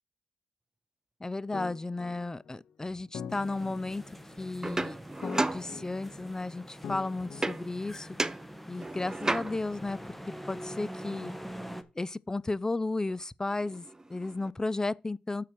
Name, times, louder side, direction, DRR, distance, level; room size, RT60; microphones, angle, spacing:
voice 1, 1.2-4.0 4.4-8.1 8.7-10.1 10.5-11.3 12.0-15.4, left 2 dB, 20° left, 0.6 m, -34 dB
sound 1, 1.5-8.2, left 7 dB, 70° left, 0.8 m, -45 dB
sound 2, 3.3-11.8, equal, 5° left, 1.6 m, -45 dB
sound 3, 4.6-6.3 7.4-7.9 8.2-9.8 13.1-13.2 13.5-14.5, right 2 dB, 20° right, 0.8 m, -34 dB
7.1 x 6.7 x 6.1 m
supercardioid pair, 45°, 3 cm